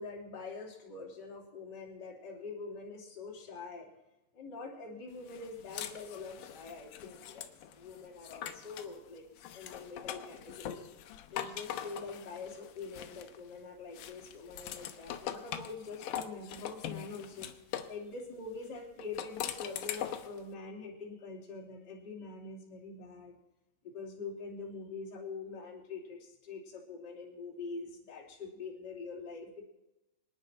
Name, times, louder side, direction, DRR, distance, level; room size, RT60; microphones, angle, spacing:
voice 1, 0.0-3.9 4.3-9.2 9.5-10.9 11.3-17.5 17.9-23.4 23.8-29.6, left 4 dB, 25° left, -3 dB, 3.3 m, -44 dB
sound 1, 5.3-8.9 9.4-13.5 13.9-18.0 19.0-20.4, left 10 dB, 80° left, 1.9 m, -42 dB
25.5 x 10.0 x 4.5 m, 0.95 s
omnidirectional pair, 4.9 m